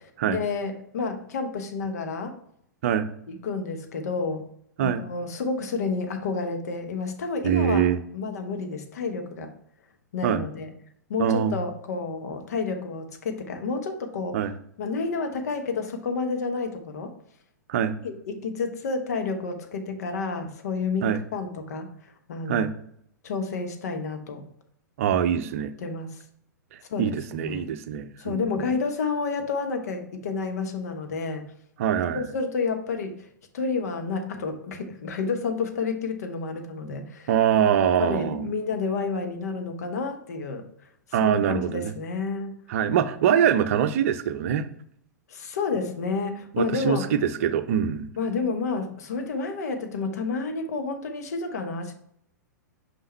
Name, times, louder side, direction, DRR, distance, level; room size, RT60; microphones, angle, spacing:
voice 1, 0.3-2.3 3.3-4.5 4.8-7.9 8.1-9.5 10.1-10.7 11.1-14.5 14.8-17.1 18.0-21.9 22.3-22.7 23.2-24.5 25.8-26.2 26.9-27.0 27.3-27.7 28.2-31.5 32.1-33.3 33.5-37.3 38.0-40.6 41.1-42.5 45.3-47.1 48.2-51.9, left 4 dB, 55° left, 6 dB, 1.0 m, -30 dB
voice 2, 7.4-8.0 10.2-10.4 11.2-11.6 14.3-14.5 17.7-18.0 21.0-21.2 22.5-22.7 25.0-25.7 26.7-28.7 31.8-32.3 37.3-38.5 41.1-41.9 42.7-44.7 46.5-48.1, right 9 dB, 45° right, 10 dB, 0.6 m, -24 dB
5.8 x 5.5 x 3.3 m, 0.70 s
figure-of-eight pair, 105°, 10 cm